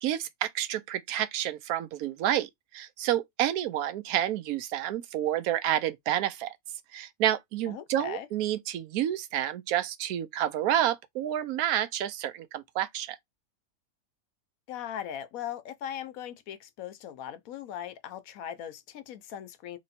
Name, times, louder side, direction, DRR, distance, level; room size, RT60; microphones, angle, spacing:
voice 1, 0.0-6.5 6.9-13.2, right 12 dB, 90° right, 1.1 m, -29 dB
voice 2, 7.7-8.3 14.7-19.8, left 10 dB, 75° left, 1.1 m, -39 dB
3.1 x 2.9 x 4.0 m
omnidirectional pair, 1.5 m